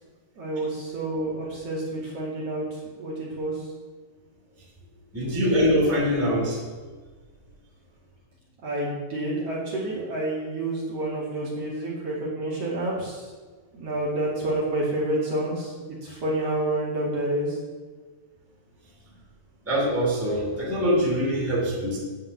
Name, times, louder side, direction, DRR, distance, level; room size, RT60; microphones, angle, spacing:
voice 1, 0.4-3.7 8.6-13.3 13.7-15.7 16.0-17.6, right 1 dB, 50° right, -5 dB, 3.2 m, -29 dB
voice 2, 5.1-6.6 19.7-22.0, equal, 5° right, -5 dB, 2.6 m, -23 dB
9.8 x 5.6 x 8.4 m, 1.4 s
omnidirectional pair, 3.7 m